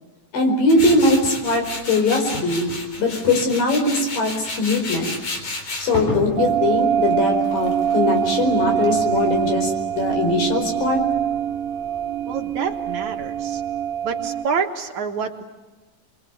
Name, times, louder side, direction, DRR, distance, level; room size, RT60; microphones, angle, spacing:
voice 1, 0.3-2.7 3.0-5.1 5.8-11.0, left 2 dB, 70° left, 4 dB, 6.3 m, -21 dB
Tools, 0.7-9.5, left 2 dB, 55° left, 5.1 m, -32 dB
sound 1, 6.4-14.5, right 9 dB, 80° right, 3.0 m, -23 dB
voice 2, 12.3-13.6 14.0-15.4, right 6 dB, 60° right, 3 dB, 2.6 m, -27 dB
28.0 x 23.0 x 8.2 m, 1.2 s
omnidirectional pair, 4.1 m